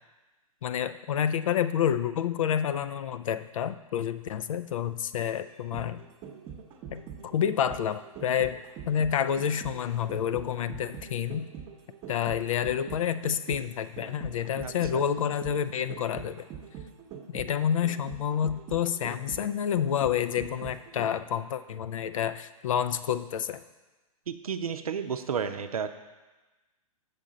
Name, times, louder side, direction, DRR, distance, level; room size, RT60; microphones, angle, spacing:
voice 1, 0.6-6.0 6.9-8.6 8.9-11.5 12.1-16.5 17.3-23.6, left 9 dB, 60° left, 12 dB, 0.4 m, -29 dB
sound 1, 5.5-21.4 21.7-21.8, right 7 dB, 30° right, 0.9 m, -43 dB
voice 2, 24.3-25.9, right 7 dB, 75° right, 9 dB, 0.6 m, -32 dB
7.1 x 6.6 x 3.8 m, 1.2 s
figure-of-eight pair, 115°, 19 cm